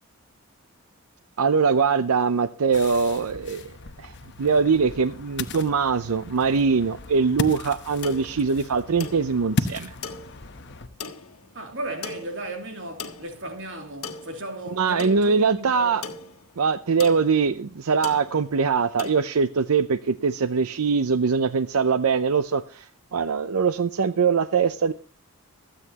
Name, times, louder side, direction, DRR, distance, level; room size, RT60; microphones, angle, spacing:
voice 1, 1.4-3.7 4.0-9.9 14.7-16.0 16.6-24.9, right 5 dB, 90° right, 0.6 m, -22 dB
Ocean, 2.7-10.9, left 3 dB, 55° left, 1.0 m, -35 dB
sound 1, 7.8-19.2, left 5 dB, 80° left, 1.5 m, -41 dB
voice 2, 11.5-16.0, right 1 dB, 60° right, 2.8 m, -35 dB
26.0 x 8.9 x 2.9 m
head